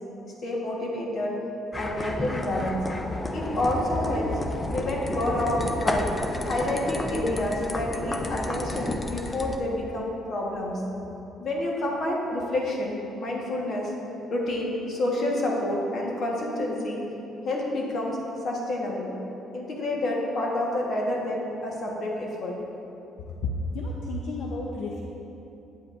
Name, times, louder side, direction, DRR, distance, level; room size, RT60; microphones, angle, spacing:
voice 1, 0.4-1.3 1.8-2.9 3.3-4.3 4.7-6.1 6.4-10.8 11.4-13.9 14.3-17.0 17.4-18.2 18.4-19.1 19.5-22.6, left 1 dB, 45° left, -2 dB, 1.2 m, -28 dB
sound 1, 1.7-9.6, left 1 dB, 15° left, 0.4 m, -31 dB
voice 2, 23.4-25.0, left 2 dB, 65° left, -1 dB, 0.5 m, -31 dB
8.6 x 7.8 x 2.5 m, 3.0 s
cardioid pair, 155°, 0 cm